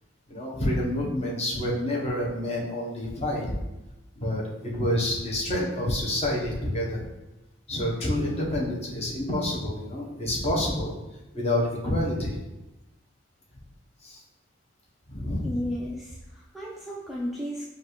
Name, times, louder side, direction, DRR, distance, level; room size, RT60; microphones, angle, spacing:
voice 1, 0.3-3.5 4.2-4.4 4.7-7.0 7.7-10.9 11.3-12.4 14.0-14.2 15.1-15.7, left 1 dB, 35° left, -3 dB, 0.8 m, -28 dB
voice 2, 15.4-17.7, equal, ahead, -5 dB, 0.3 m, -33 dB
5.2 x 2.4 x 3.0 m, 0.99 s
head